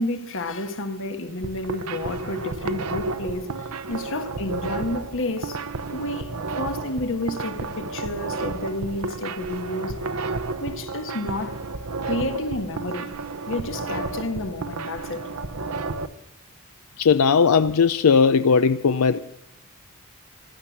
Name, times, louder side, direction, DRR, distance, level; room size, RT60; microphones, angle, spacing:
voice 1, 0.0-3.5 3.9-5.6 5.9-10.0 10.6-11.6 12.0-13.1 13.5-15.3 19.1-19.2, left 1 dB, 60° left, 1.4 m, -30 dB
sound 1, 1.3-16.1, right 3 dB, 90° right, 0.9 m, -32 dB
voice 2, 17.0-19.2, left 5 dB, 80° left, 0.5 m, -18 dB
15.5 x 12.5 x 7.3 m
head